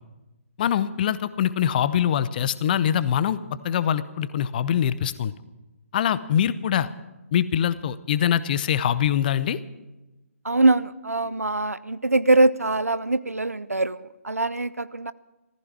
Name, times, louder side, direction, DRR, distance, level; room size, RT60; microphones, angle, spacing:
voice 1, 0.6-3.4 3.6-5.3 5.9-6.9 7.3-9.6, left 9 dB, 35° left, 16 dB, 0.7 m, -23 dB
voice 2, 10.4-15.1, right 2 dB, 85° right, 17 dB, 0.6 m, -22 dB
14.5 x 14.5 x 6.1 m, 1.0 s
figure-of-eight pair, 135°, 8 cm